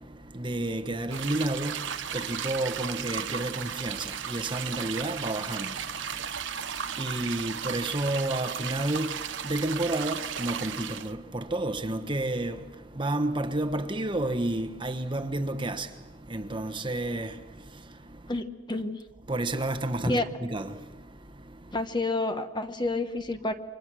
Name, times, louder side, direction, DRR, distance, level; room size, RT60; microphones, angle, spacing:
voice 1, 0.0-18.3 19.3-21.8, right 1 dB, 25° right, 1.1 m, -31 dB
sound 1, 1.1-11.1, right 8 dB, 75° right, 1.0 m, -35 dB
voice 2, 18.3-19.0 20.0-20.3 21.7-23.5, left 2 dB, 25° left, 1.1 m, -29 dB
29.0 x 24.5 x 6.2 m
head